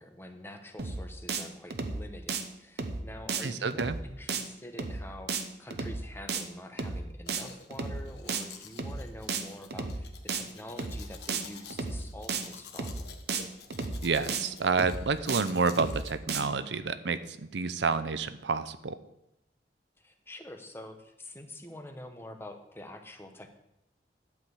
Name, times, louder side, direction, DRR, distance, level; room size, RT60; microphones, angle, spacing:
voice 1, 0.0-13.2 20.0-23.6, left 1 dB, 15° left, 5 dB, 1.1 m, -46 dB
sound 1, 0.8-1.0 1.3-1.4 1.7-2.0 2.3-2.4 2.8-3.0 3.3-3.4 3.7-4.0 4.3-4.4 4.8-5.0 5.3-5.4 5.7-6.0 6.3-6.4 6.8-7.0 7.3-7.4 7.7-8.0 8.3-8.4 8.8-9.0 9.3-9.4 9.7-10.0 10.3-10.4 10.8-11.0 11.3-11.4 11.7-12.0 12.3-12.4 12.8-13.0 13.3-13.4 13.7-14.0 14.3-14.4 14.8-15.0 15.3-15.4 15.7-16.0 16.3-16.4, right 4 dB, 65° right, 1.0 m, -33 dB
voice 2, 3.4-4.0 14.0-19.0, right 4 dB, 85° right, 13 dB, 0.7 m, -29 dB
Domestic sounds home sounds, 7.3-16.1, left 6 dB, 70° left, 1.3 m, -51 dB
12.0 x 5.1 x 8.0 m, 0.83 s
head